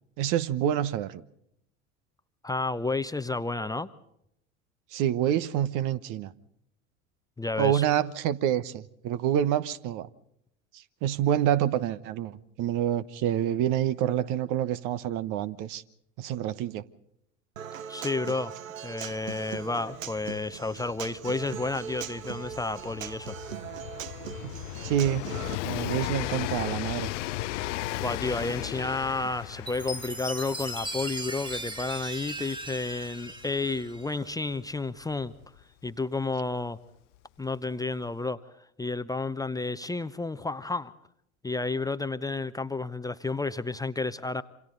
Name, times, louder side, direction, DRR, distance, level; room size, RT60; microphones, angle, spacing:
voice 1, 0.2-1.2 4.9-6.3 7.6-10.1 11.0-15.8 16.2-16.8 24.4-24.5 24.8-25.2 25.6-27.1, right 11 dB, 50° right, 1.1 m, -27 dB
voice 2, 2.4-3.9 7.4-7.8 17.9-18.5 18.8-23.4 28.0-35.3 35.8-36.8 37.4-38.4 38.8-40.9 41.4-44.4, left 3 dB, 10° left, 0.8 m, -31 dB
Human voice / Acoustic guitar, 17.6-25.5, right 8 dB, 85° right, 0.8 m, -40 dB
Train, 19.3-19.4 19.5-36.2 37.1-37.2, left 16 dB, 70° left, 0.7 m, -37 dB
Chime, 29.7-34.3, right 1 dB, 10° right, 1.7 m, -38 dB
28.0 x 26.0 x 3.9 m
hypercardioid pair, 75°, 38 cm